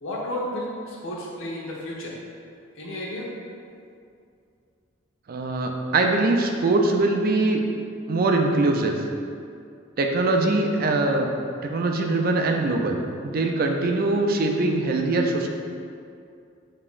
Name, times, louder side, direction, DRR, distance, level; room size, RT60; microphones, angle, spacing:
voice 1, 0.0-2.2 2.7-3.3, left 1 dB, 90° left, -4 dB, 0.9 m, -32 dB
voice 2, 5.3-7.6 8.1-9.0 10.0-11.3 11.6-15.5, right 2 dB, 45° right, 3 dB, 0.4 m, -22 dB
6.9 x 2.9 x 2.4 m, 2.4 s
head